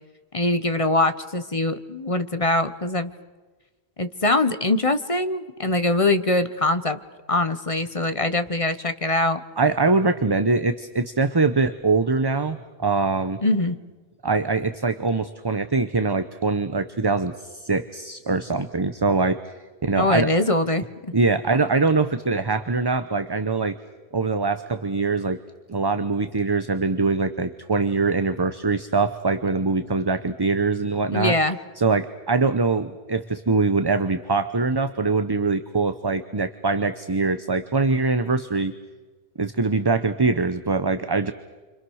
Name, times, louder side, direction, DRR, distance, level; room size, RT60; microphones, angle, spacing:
voice 1, 0.3-3.1 4.0-7.0 7.3-9.4 13.4-13.8 20.0-21.1 31.1-31.6, left 2 dB, 35° left, 10 dB, 1.1 m, -23 dB
voice 2, 9.6-13.4 14.2-19.5 19.8-20.3 21.1-23.8 24.1-25.4 25.7-31.4 31.8-38.7 39.4-41.3, right 3 dB, 25° right, 10 dB, 0.8 m, -23 dB
30.0 x 25.5 x 6.4 m, 1.3 s
omnidirectional pair, 1.1 m